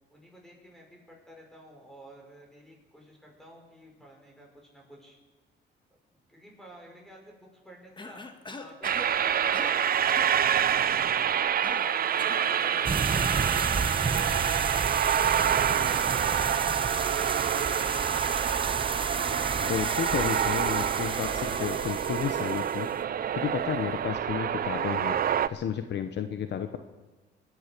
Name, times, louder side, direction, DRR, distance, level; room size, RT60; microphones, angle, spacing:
voice 1, 0.1-5.2 6.1-8.2 8.6-14.6 15.0-17.1, equal, ahead, -1 dB, 5.7 m, -52 dB
Cough, 8.0-9.1 9.5-9.8 10.1-10.3 11.6-12.5, left 3 dB, 25° left, 1.5 m, -42 dB
sound 1, 8.8-25.5, right 9 dB, 50° right, 0.6 m, -27 dB
sound 2, 12.8-22.8, right 4 dB, 25° right, 1.0 m, -32 dB
voice 2, 19.6-26.8, left 8 dB, 60° left, 8 dB, 0.9 m, -32 dB
23.0 x 10.0 x 6.1 m, 1.2 s
cardioid pair, 90°, 20 cm